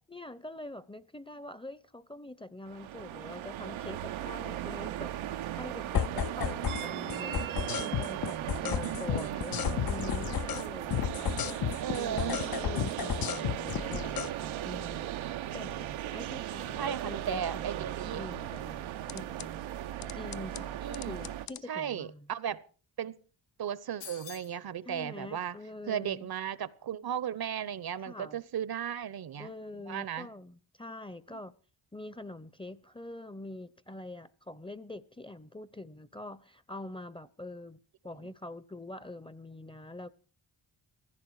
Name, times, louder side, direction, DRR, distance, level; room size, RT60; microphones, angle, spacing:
voice 1, 0.1-15.3 15.5-19.6 20.1-22.3 24.9-26.3 28.0-28.4 29.4-31.5 31.9-40.1, left 2 dB, 10° left, 0.8 m, -45 dB
sound 1, 2.7-21.5, right 12 dB, 90° right, 1.0 m, -37 dB
sound 2, 5.9-6.8 7.1-10.7 10.9-14.3 19.1-19.5 20.0-20.6 20.9-21.6, left 10 dB, 50° left, 0.7 m, -32 dB
voice 2, 8.8-9.5 11.8-12.4 16.7-18.2 20.8-21.2 21.7-22.6 23.0-23.2 23.6-25.6 25.9-29.5 29.9-30.3 31.3-31.4 38.2-38.3, right 9 dB, 50° right, 0.9 m, -36 dB
sound 3, 24.0-24.6, left 9 dB, 70° left, 1.5 m, -46 dB
16.5 x 15.0 x 4.8 m
cardioid pair, 70°, 47 cm